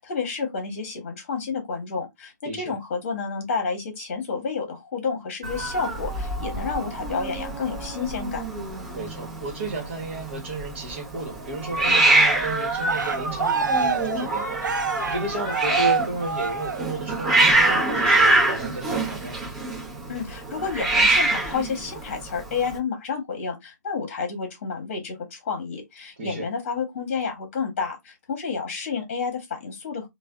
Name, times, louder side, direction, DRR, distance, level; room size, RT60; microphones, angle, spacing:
voice 1, 0.0-8.4 20.1-30.1, left 5 dB, 35° left, 1.2 m, -30 dB
voice 2, 2.4-2.8 8.9-19.4 26.2-26.4, right 2 dB, 40° right, 1.2 m, -33 dB
Hiss, 5.4-22.8, right 2 dB, 20° right, 0.9 m, -25 dB
Cheering, 11.9-17.2 17.6-18.0, right 5 dB, 75° right, 0.6 m, -27 dB
3.2 x 2.3 x 2.3 m
hypercardioid pair, 165°, 10 cm